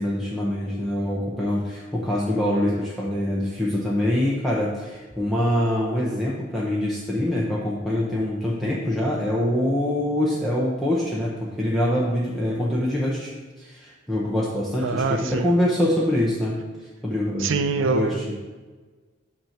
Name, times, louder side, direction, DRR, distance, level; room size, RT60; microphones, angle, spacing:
voice 1, 0.0-18.4, left 1 dB, ahead, -7 dB, 0.8 m, -25 dB
voice 2, 14.8-15.5 17.4-18.4, right 4 dB, 75° right, 8 dB, 0.5 m, -24 dB
8.3 x 3.0 x 5.8 m, 1.3 s
head